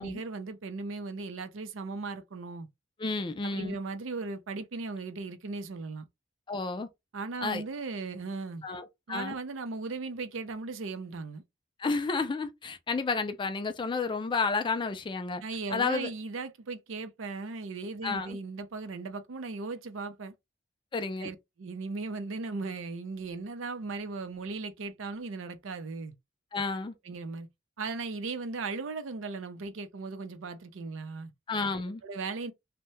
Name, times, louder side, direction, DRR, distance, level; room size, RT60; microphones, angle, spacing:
voice 1, 0.0-2.7 3.4-6.1 7.1-8.6 9.1-11.4 15.4-20.3 21.2-26.1 27.0-27.5 27.8-31.3 32.0-32.5, right 3 dB, 75° right, 0.5 m, -37 dB
voice 2, 3.0-3.8 6.5-6.9 7.4-7.6 8.6-9.3 11.8-15.4 15.7-16.1 18.0-18.4 20.9-21.3 26.5-26.9 31.5-32.0, left 4 dB, 25° left, 0.3 m, -31 dB
2.7 x 2.1 x 3.1 m
head